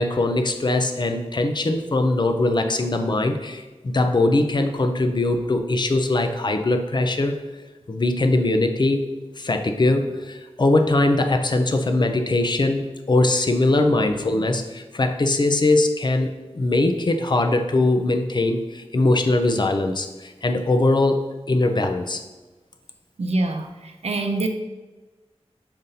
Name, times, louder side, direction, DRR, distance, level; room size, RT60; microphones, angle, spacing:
voice 1, 0.0-7.4 7.9-9.1 9.4-22.2, left 2 dB, 45° left, 5 dB, 0.5 m, -21 dB
voice 2, 23.2-24.5, right 2 dB, 75° right, 4 dB, 0.6 m, -25 dB
6.8 x 2.6 x 5.6 m, 1.2 s
wide cardioid pair, 70°, 11 cm